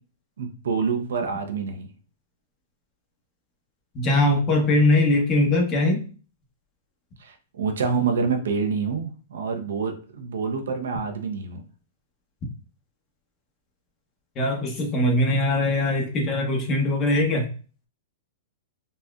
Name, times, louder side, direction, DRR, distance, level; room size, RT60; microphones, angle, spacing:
voice 1, 0.4-1.9 7.2-11.6, right 5 dB, 80° right, 5 dB, 0.7 m, -27 dB
voice 2, 3.9-6.1 14.4-17.5, left 1 dB, 30° left, 1 dB, 1.0 m, -21 dB
4.1 x 2.2 x 2.4 m, 0.38 s
hypercardioid pair, 135°, 0 cm